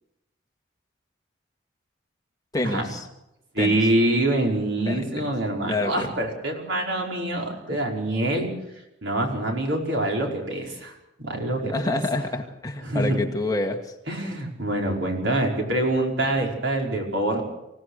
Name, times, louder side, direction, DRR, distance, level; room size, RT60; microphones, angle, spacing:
voice 1, 2.5-3.1 3.6-3.8 4.9-5.3 5.7-6.1 11.7-13.9, left 2 dB, 20° left, 3 dB, 2.0 m, -27 dB
voice 2, 3.5-8.5 9.0-10.9 11.2-11.7 12.8-13.2 14.1-17.4, right 1 dB, 80° right, 0 dB, 5.2 m, -25 dB
25.5 x 17.0 x 6.5 m, 0.89 s
head